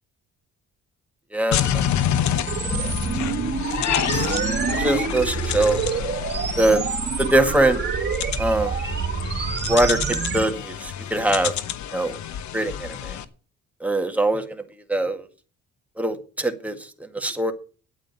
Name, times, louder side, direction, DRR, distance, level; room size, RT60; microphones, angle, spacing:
voice 1, 1.3-1.8 2.8-2.9 4.1-4.3 4.8-5.8 6.6-6.8 7.2-7.8 8.4-8.8 9.7-11.5 11.9-12.1 12.5-13.2 13.8-14.6 14.9-15.3 16.0-17.5, right 1 dB, 5° right, 5 dB, 1.9 m, -22 dB
sound 1, 1.5-13.2, left 9 dB, 70° left, 1.0 m, -28 dB
sound 2, 2.5-10.5, right 6 dB, 35° right, 1.7 m, -27 dB
8.9 x 8.8 x 7.1 m, 0.38 s
cardioid pair, 90°, 30 cm